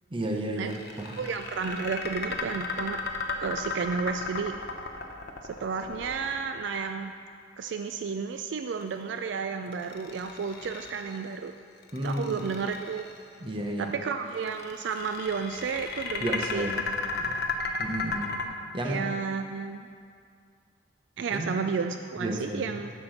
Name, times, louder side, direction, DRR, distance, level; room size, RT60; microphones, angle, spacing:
voice 1, 0.1-1.2 11.9-12.4 13.4-13.9 16.2-16.9 17.2-17.4 17.8-18.3 18.7-19.1 21.3-21.5 22.2-22.7, right 1 dB, 25° right, 1 dB, 0.9 m, -32 dB
sound 1, 0.7-6.9 9.7-11.3 11.8-13.2 14.4-18.4, left 4 dB, 60° left, 0.8 m, -34 dB
voice 2, 1.2-3.0 3.4-4.5 5.4-7.1 7.6-11.5 12.0-13.0 13.8-16.7 17.2-17.4 18.8-19.9 21.2-22.9, right 5 dB, 65° right, 6 dB, 0.3 m, -32 dB
9.9 x 4.4 x 6.4 m, 2.3 s
head